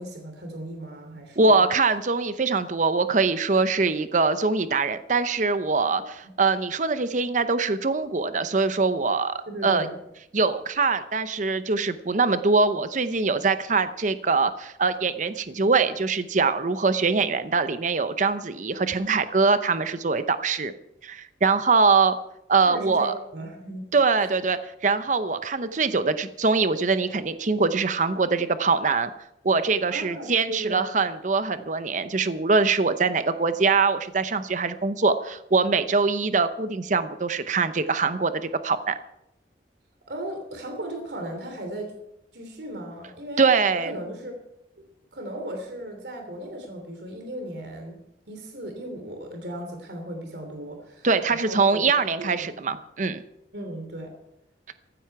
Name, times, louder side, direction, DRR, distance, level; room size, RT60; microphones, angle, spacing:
voice 1, 0.0-1.6 5.9-6.0 9.5-10.0 22.7-23.8 24.2-24.3 29.9-30.9 40.1-41.9 42.3-43.4 43.8-44.3 44.7-44.8 45.1-48.0 48.3-51.9 52.2-52.4 53.5-54.1, right 1 dB, 70° right, 4 dB, 3.1 m, -36 dB
voice 2, 1.4-9.9 10.3-20.7 21.0-22.2 22.5-23.1 23.9-29.1 29.4-38.3 38.6-39.0 43.4-43.9 51.0-53.2, right 4 dB, 45° right, 11 dB, 0.7 m, -23 dB
15.0 x 13.5 x 4.7 m, 0.82 s
head